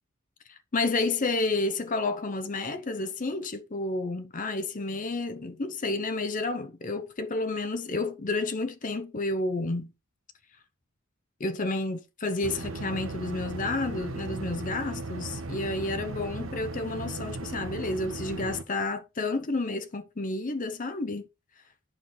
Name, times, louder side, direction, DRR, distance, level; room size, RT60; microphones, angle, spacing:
voice 1, 0.5-9.9 11.4-21.3, left 2 dB, 40° left, 0.7 m, -30 dB
sound 1, 12.4-18.6, right 2 dB, 90° right, 1.1 m, -37 dB
8.8 x 5.7 x 4.3 m
head